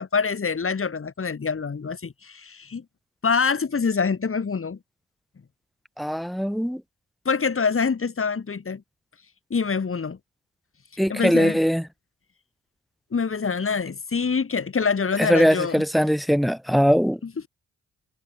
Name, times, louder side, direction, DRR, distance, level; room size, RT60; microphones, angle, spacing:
voice 1, 0.0-2.8 3.2-4.8 7.3-8.8 9.5-10.2 11.1-11.6 13.1-15.8 17.2-17.3, left 5 dB, 40° left, 1.8 m, -25 dB
voice 2, 6.0-6.8 11.0-11.8 15.2-17.2, equal, ahead, 0.9 m, -21 dB
supercardioid pair, 45°, 35 cm